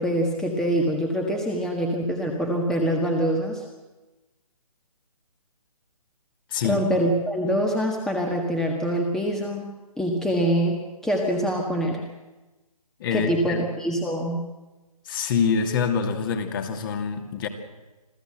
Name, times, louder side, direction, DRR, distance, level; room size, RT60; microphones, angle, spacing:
voice 1, 0.0-3.6 6.6-9.7 10.0-12.0 13.1-14.4, equal, ahead, 2 dB, 1.6 m, -25 dB
voice 2, 6.5-6.8 13.0-13.6 15.1-17.5, left 6 dB, 35° left, 6 dB, 2.6 m, -25 dB
27.0 x 15.0 x 7.8 m, 1.1 s
figure-of-eight pair, 145°, 19 cm